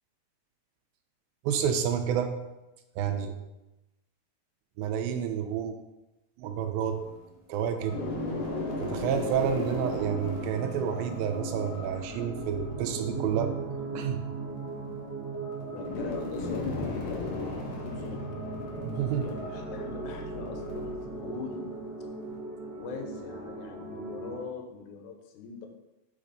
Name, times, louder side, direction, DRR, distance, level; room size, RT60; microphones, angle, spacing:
voice 1, 1.4-2.3 3.0-3.3 4.8-5.7 6.4-7.0 7.5-8.0 8.8-13.5 13.9-14.2 18.8-19.3, right 8 dB, 80° right, 6 dB, 2.3 m, -29 dB
sound 1, 6.5-7.3 7.8-22.4, left 2 dB, 60° left, 1.4 m, -39 dB
sound 2, 8.0-24.4, right 3 dB, 65° right, 1.1 m, -39 dB
voice 2, 15.7-18.4 19.2-21.7 22.8-25.7, left 5 dB, 75° left, 4 dB, 1.9 m, -41 dB
Motorcycle, 16.4-21.6, left 2 dB, 45° right, 2.3 m, -42 dB
6.2 x 4.2 x 5.0 m, 0.99 s
omnidirectional pair, 4.2 m